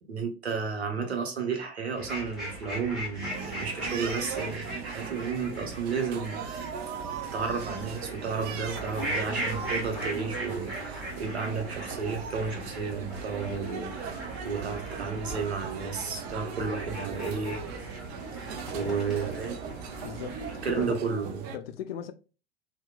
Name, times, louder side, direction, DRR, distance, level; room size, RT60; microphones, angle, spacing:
voice 1, 0.1-6.7 7.3-17.6 18.3-19.6 20.0-20.1 20.6-21.5, right 5 dB, 80° right, 0.7 m, -32 dB
sound 1, 1.9-20.9, right 1 dB, ahead, 1.1 m, -39 dB
sound 2, 3.3-21.6, right 7 dB, 40° right, 0.4 m, -39 dB
voice 2, 20.0-21.0 21.5-22.1, left 9 dB, 65° left, 0.4 m, -38 dB
2.8 x 2.1 x 2.2 m
figure-of-eight pair, 80°, 32 cm